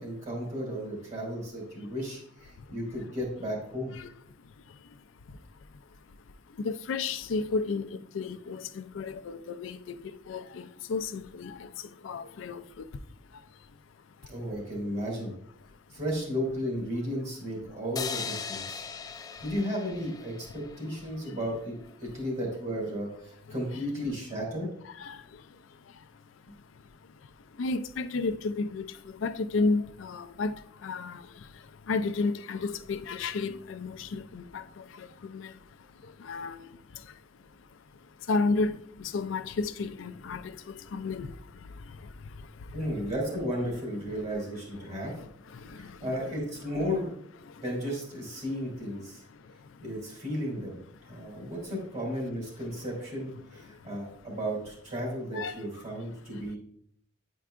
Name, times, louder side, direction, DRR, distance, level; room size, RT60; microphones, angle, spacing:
voice 1, 0.0-3.9 14.3-15.3 15.9-18.9 19.4-21.7 22.0-24.7 42.7-45.1 45.8-47.1 47.6-49.2 49.8-50.8 51.1-56.6, equal, 40° right, 2.6 m, -34 dB
voice 2, 4.4-14.3 15.7-16.0 18.8-19.4 24.8-43.1 44.9-46.2 47.4-47.6 49.1-49.9 51.0-51.5 53.5-54.0 55.3-55.6 56.3-56.4, left 3 dB, 90° left, 0.4 m, -35 dB
sound 1, 18.0-21.3, left 6 dB, 20° left, 0.3 m, -39 dB
9.3 x 4.5 x 2.5 m
head